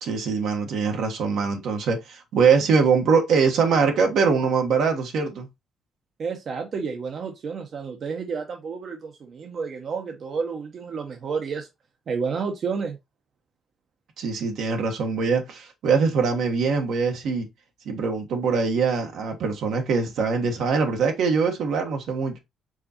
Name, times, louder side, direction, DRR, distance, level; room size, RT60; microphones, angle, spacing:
voice 1, 0.0-5.5 14.2-17.5 17.8-22.3, right 5 dB, 75° right, 1.3 m, -23 dB
voice 2, 6.2-11.7 12.1-13.0, right 5 dB, 55° right, 0.9 m, -30 dB
4.8 x 3.9 x 2.9 m
cardioid pair, 90°, 0 cm